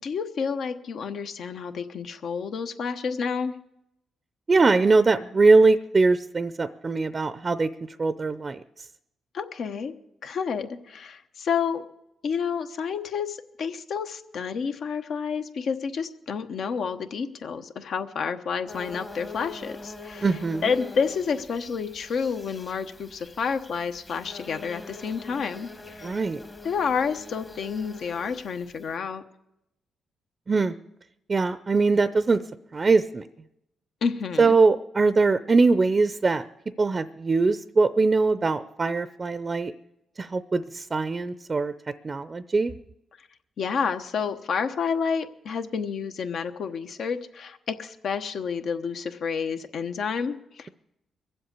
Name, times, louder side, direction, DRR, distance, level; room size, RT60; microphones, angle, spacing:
voice 1, 0.0-3.5 9.3-9.9 10.2-11.8 12.2-26.2 26.6-29.2 34.0-34.6 43.6-50.7, left 6 dB, 70° left, 7 dB, 1.0 m, -30 dB
voice 2, 4.5-7.7 8.0-8.6 20.2-20.6 26.0-26.4 30.5-30.7 31.3-32.4 32.7-33.2 34.4-36.4 36.8-39.7 40.2-41.7 42.0-42.7, right 3 dB, 35° right, 12 dB, 0.6 m, -22 dB
sound 1, 18.7-28.9, left 3 dB, 30° left, 1.2 m, -44 dB
22.0 x 7.8 x 8.3 m, 0.86 s
cardioid pair, 70°, 0 cm